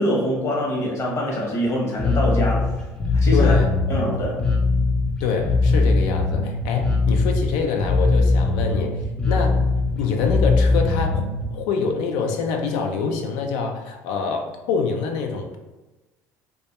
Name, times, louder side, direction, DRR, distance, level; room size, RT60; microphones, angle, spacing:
voice 1, 0.0-2.7 3.1-3.5 3.9-4.4, equal, 45° left, -2 dB, 0.8 m, -24 dB
Bass guitar, 2.0-11.5, left 3 dB, 15° left, 0.5 m, -20 dB
voice 2, 3.3-3.7 5.2-9.0 9.3-9.6 10.0-15.6, left 5 dB, 80° left, 3 dB, 0.4 m, -25 dB
2.2 x 2.1 x 2.8 m, 1.1 s
supercardioid pair, 90°, 7 cm